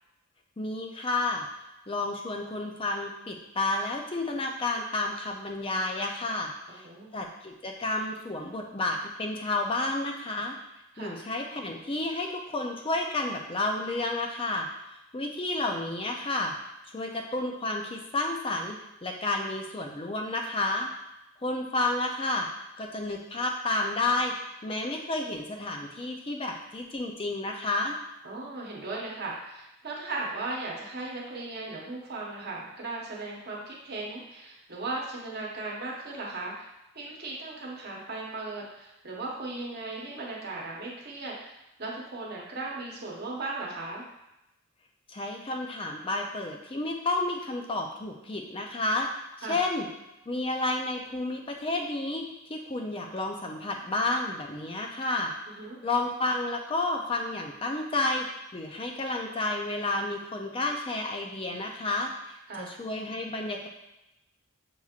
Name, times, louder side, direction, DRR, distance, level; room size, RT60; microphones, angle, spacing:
voice 1, 0.6-1.5 1.9-6.9 7.1-10.6 11.0-14.7 15.1-16.5 16.9-20.9 21.4-22.5 22.8-24.3 24.6-28.0 45.1-49.1 49.4-49.9 50.3-55.3 55.8-63.7, left 2 dB, 25° left, 2 dB, 0.5 m, -31 dB
voice 2, 6.7-7.1 10.9-11.2 28.2-36.7 36.9-44.0 49.4-49.6 55.5-55.8 62.5-62.7, right 2 dB, 50° right, -3 dB, 1.0 m, -37 dB
6.9 x 3.0 x 2.4 m, 0.92 s
head